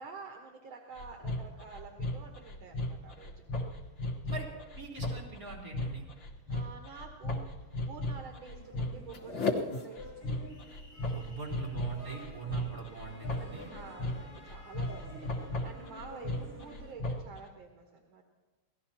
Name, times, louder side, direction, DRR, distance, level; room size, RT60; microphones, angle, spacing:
voice 1, 0.0-3.4 6.5-7.5 7.9-10.3 13.6-18.2, right 5 dB, 70° right, 1 dB, 2.1 m, -49 dB
sound 1, 1.0-17.4, left 2 dB, 65° left, 2.1 m, -36 dB
voice 2, 4.7-6.0 11.1-13.7 15.0-15.2, right 4 dB, 40° right, -4 dB, 4.5 m, -42 dB
sound 2, 8.3-16.9, equal, 15° left, 3.9 m, -51 dB
27.5 x 18.0 x 2.9 m, 1.2 s
omnidirectional pair, 2.3 m